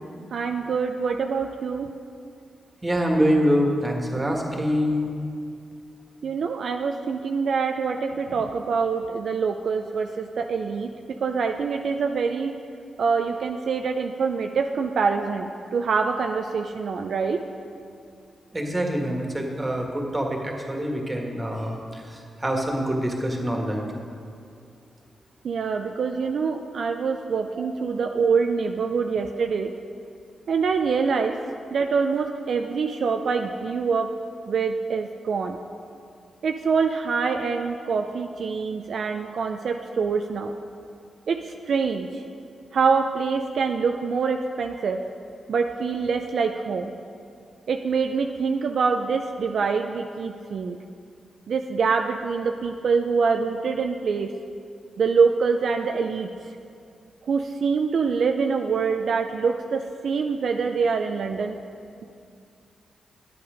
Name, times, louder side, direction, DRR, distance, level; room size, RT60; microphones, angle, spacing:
voice 1, 0.3-1.9 6.2-10.9 11.2-12.5 13.0-17.4 25.4-29.7 30.5-31.3 31.7-34.1 34.5-35.6 36.4-40.6 41.3-42.2 42.7-45.0 45.5-46.9 47.7-50.8 51.5-54.3 55.0-56.3 57.3-61.6, right 5 dB, 70° right, 4 dB, 0.4 m, -25 dB
voice 2, 2.8-5.2 18.5-23.8, equal, 25° right, 1 dB, 1.8 m, -25 dB
9.5 x 8.7 x 5.1 m, 2.4 s
cardioid pair, 60°, 0 cm